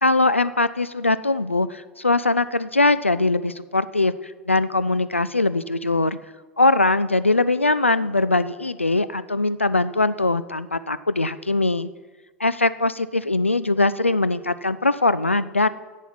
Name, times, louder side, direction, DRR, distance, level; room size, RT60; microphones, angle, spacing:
voice 1, 0.0-6.2 6.6-11.9 12.4-15.7, left 2 dB, 90° left, 15 dB, 0.3 m, -21 dB
10.5 x 7.3 x 5.9 m, 1.3 s
figure-of-eight pair, 80°, 7 cm